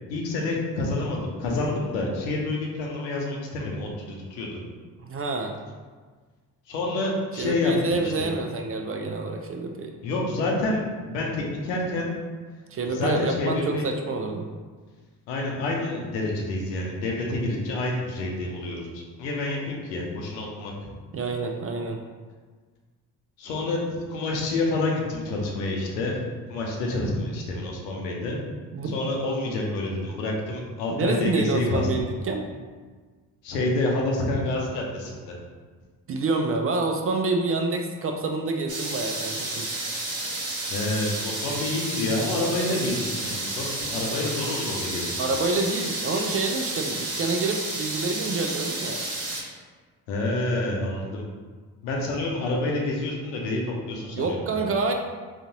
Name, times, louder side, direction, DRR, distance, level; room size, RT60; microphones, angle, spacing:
voice 1, 0.1-4.6 6.7-8.1 10.0-12.1 12.9-13.9 15.3-20.7 23.4-26.2 26.5-28.4 28.9-31.9 33.4-35.4 40.7-45.1 50.1-51.2 51.8-54.6, left 2 dB, 85° left, -1 dB, 0.7 m, -28 dB
voice 2, 5.0-5.6 7.4-9.9 12.7-14.5 21.1-22.0 28.7-29.0 30.9-32.5 36.1-39.7 45.2-49.0 54.1-54.9, right 3 dB, 30° right, 4 dB, 0.4 m, -27 dB
sound 1, 38.7-49.4, right 2 dB, 50° right, 1.2 m, -31 dB
3.7 x 2.4 x 2.8 m, 1.5 s
hypercardioid pair, 45°, 47 cm